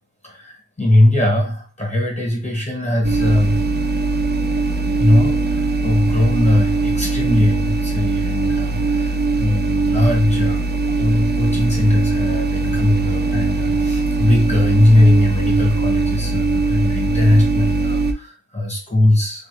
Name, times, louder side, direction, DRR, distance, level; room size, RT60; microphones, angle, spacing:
voice 1, 0.2-3.6 5.0-10.6 11.0-19.5, left 1 dB, 15° left, -1 dB, 1.0 m, -19 dB
sound 1, 3.0-18.1, right 3 dB, 30° right, 0.3 m, -20 dB
2.7 x 2.4 x 3.3 m, 0.37 s
wide cardioid pair, 75°, 40 cm